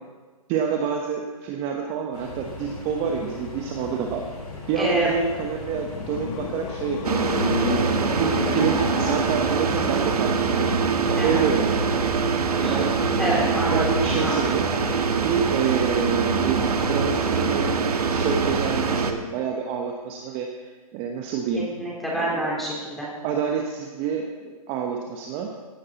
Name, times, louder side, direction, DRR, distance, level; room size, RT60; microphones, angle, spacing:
voice 1, 0.5-4.2 4.7-7.2 7.6-10.8 11.1-11.9 12.6-12.9 13.6-14.7 15.1-21.7 22.1-22.5 23.2-25.5, right 7 dB, 30° right, 2 dB, 1.1 m, -28 dB
sound 1, 2.1-15.0, left 3 dB, 85° left, 4.5 m, -38 dB
voice 2, 4.8-5.1 11.2-11.4 12.6-12.9 13.2-14.4 21.8-23.1, right 1 dB, ahead, -5 dB, 3.7 m, -27 dB
sound 2, 5.5-10.7, left 7 dB, 55° left, 1.2 m, -32 dB
sound 3, 7.0-19.1, right 5 dB, 80° right, 1.3 m, -24 dB
16.5 x 9.8 x 4.2 m, 1.4 s
hypercardioid pair, 140°, 19 cm